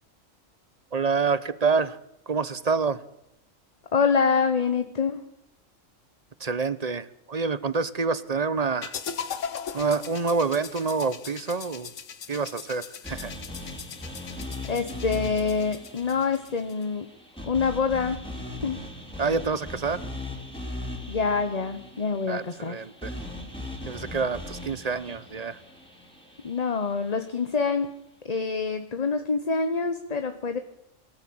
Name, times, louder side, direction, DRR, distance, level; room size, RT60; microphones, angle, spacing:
voice 1, 0.9-2.0 2.3-3.0 6.4-9.0 9.7-11.9 12.3-13.3 19.2-20.0 22.3-23.1 23.9-25.6, right 4 dB, 35° right, 16 dB, 1.0 m, -27 dB
voice 2, 3.9-5.2 14.7-17.1 17.4-18.2 18.6-18.8 21.1-22.8 26.4-27.9 28.2-30.6, left 5 dB, 30° left, 8 dB, 1.1 m, -26 dB
sound 1, 8.8-16.8, left 7 dB, 70° left, 1.5 m, -39 dB
sound 2, 13.0-27.2, left 1 dB, 5° left, 4.3 m, -39 dB
22.5 x 13.5 x 8.7 m, 0.81 s
omnidirectional pair, 1.4 m